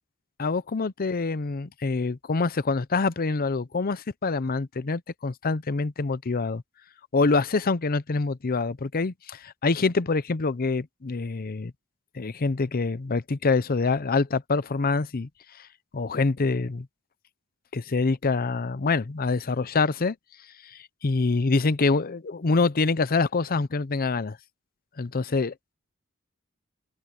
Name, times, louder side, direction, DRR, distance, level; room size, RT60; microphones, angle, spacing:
voice 1, 0.4-6.6 7.1-11.7 12.1-15.3 15.6-15.7 15.9-16.9 17.7-20.2 20.6-24.4 25.0-25.5, left 3 dB, 45° left, 0.7 m, -25 dB
open air
head